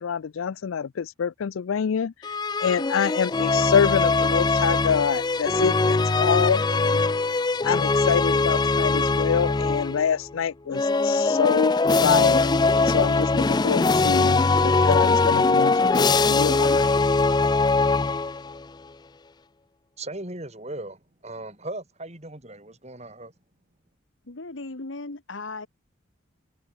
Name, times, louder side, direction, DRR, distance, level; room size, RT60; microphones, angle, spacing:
voice 1, 0.0-2.1 2.6-7.0 7.6-11.8 12.0-12.5 12.9-16.9, left 7 dB, 85° left, 0.4 m, -26 dB
sound 1, 2.2-10.1 10.7-18.6, left 3 dB, 20° left, 0.4 m, -21 dB
voice 2, 20.0-23.3, right 2 dB, 35° right, 6.4 m, -37 dB
voice 3, 24.3-25.7, left 3 dB, 70° left, 1.5 m, -36 dB
head